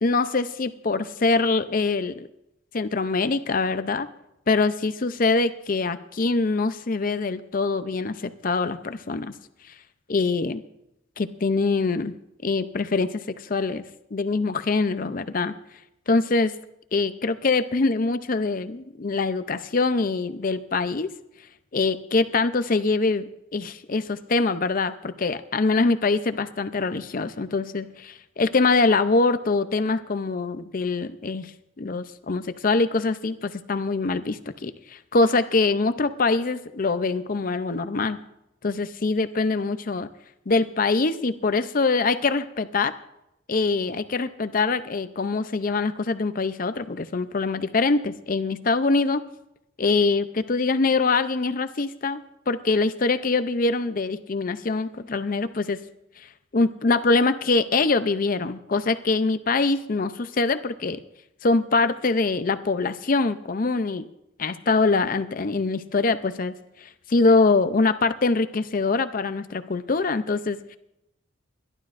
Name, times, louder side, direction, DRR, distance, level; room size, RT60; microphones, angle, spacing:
voice 1, 0.0-2.3 2.7-4.1 4.5-9.3 10.1-10.6 11.2-12.1 12.4-13.8 14.1-15.5 16.1-16.5 16.9-21.1 21.7-23.2 23.5-31.5 31.8-38.2 38.6-40.1 40.5-42.9 43.5-49.2 49.8-52.2 52.5-55.8 56.2-56.3 56.5-61.0 61.4-64.1 64.4-66.5 66.8-70.6, left 3 dB, 45° left, 11 dB, 0.5 m, -24 dB
29.5 x 12.0 x 2.5 m, 0.86 s
head